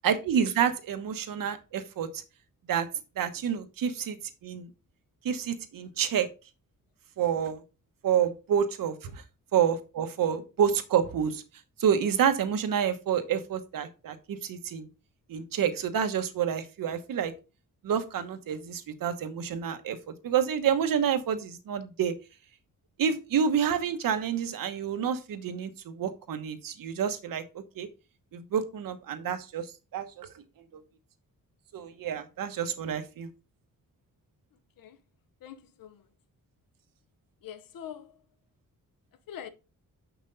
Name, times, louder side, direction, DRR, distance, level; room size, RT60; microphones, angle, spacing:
voice 1, 0.0-2.1 2.7-2.9 3.2-4.2 4.4-4.7 5.2-6.3 7.2-7.6 8.0-8.9 9.5-11.4 11.8-14.9 15.3-17.3 17.8-22.1 23.0-27.4 27.8-27.9 28.3-29.7 29.9-30.3 30.7-30.8 31.7-33.3, right 8 dB, 80° right, 1.1 m, -28 dB
voice 2, 35.4-36.1 37.4-38.2 39.3-39.5, left 9 dB, 80° left, 1.0 m, -44 dB
6.6 x 6.1 x 4.0 m
wide cardioid pair, 175°, 33 cm